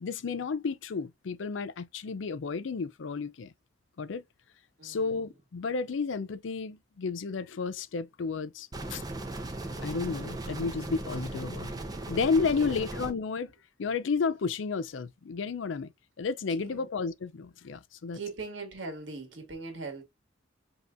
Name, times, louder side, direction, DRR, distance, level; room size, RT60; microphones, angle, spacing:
voice 1, 0.0-3.5 4.0-4.2 4.8-9.0 9.8-11.7 12.1-13.5 13.8-15.9 16.2-18.2, left 4 dB, 80° left, 0.5 m, -32 dB
voice 2, 4.8-5.3 12.4-12.8 16.5-16.9 18.1-20.0, right 3 dB, 75° right, 1.7 m, -41 dB
sound 1, 8.7-13.1, right 2 dB, 20° right, 0.7 m, -37 dB
5.3 x 2.9 x 2.5 m
head